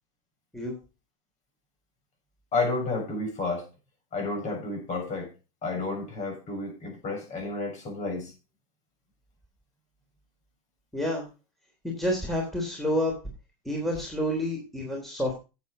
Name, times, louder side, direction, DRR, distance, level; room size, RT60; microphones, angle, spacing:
voice 1, 2.5-3.7 4.1-5.3 5.6-8.3, left 3 dB, 40° left, 7.3 m, -31 dB
voice 2, 10.9-11.3 11.8-13.1 13.6-15.3, left 1 dB, ahead, 3.4 m, -29 dB
9.3 x 8.4 x 5.0 m
supercardioid pair, 120°, 19 cm